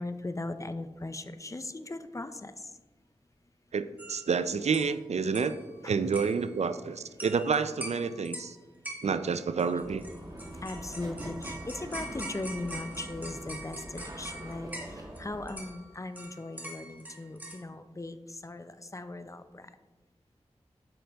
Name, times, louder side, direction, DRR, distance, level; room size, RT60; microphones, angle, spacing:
voice 1, 0.0-2.7 5.8-5.9 10.6-19.7, left 2 dB, 30° left, 11 dB, 0.5 m, -39 dB
voice 2, 3.7-5.6 5.8-8.6 9.0-10.0, right 5 dB, 75° right, 12 dB, 0.4 m, -29 dB
sound 1, 4.0-4.4 4.7-4.9 5.3-5.7 6.1-6.6 7.2-7.6 7.8-8.5 8.8-9.3 9.6-15.2 15.5-17.6, right 1 dB, 15° right, 1.7 m, -43 dB
sound 2, 9.8-15.5, right 1 dB, 35° right, 1.4 m, -43 dB
8.9 x 6.5 x 3.4 m, 1.2 s
wide cardioid pair, 60°, 11 cm